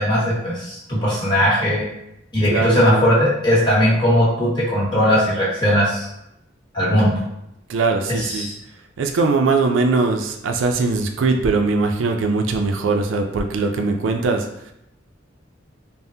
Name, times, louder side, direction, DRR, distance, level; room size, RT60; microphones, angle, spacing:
voice 1, 0.0-1.8 2.3-6.0 6.7-7.2 8.2-8.5, equal, 25° left, -7 dB, 1.0 m, -18 dB
voice 2, 2.4-3.1 7.7-8.5 9.0-14.7, right 3 dB, 85° right, 4 dB, 0.4 m, -21 dB
3.4 x 2.0 x 2.7 m, 0.82 s
head